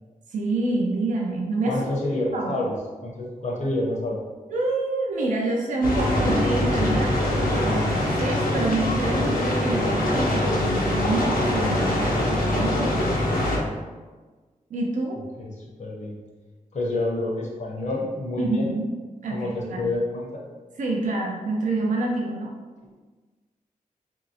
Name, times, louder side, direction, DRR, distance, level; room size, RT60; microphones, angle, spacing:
voice 1, 0.3-1.8 2.3-2.6 4.5-13.3 14.7-15.2 18.4-18.9 19.2-19.8 20.8-22.5, right 2 dB, 65° right, -1 dB, 0.4 m, -27 dB
voice 2, 1.6-4.2 15.4-16.2 16.7-18.7 19.3-20.4, left 2 dB, 55° left, -2 dB, 0.7 m, -28 dB
sound 1, 5.8-13.6, left 1 dB, 90° left, 0.7 m, -23 dB
3.0 x 2.7 x 2.6 m, 1.3 s
wide cardioid pair, 135°, 14 cm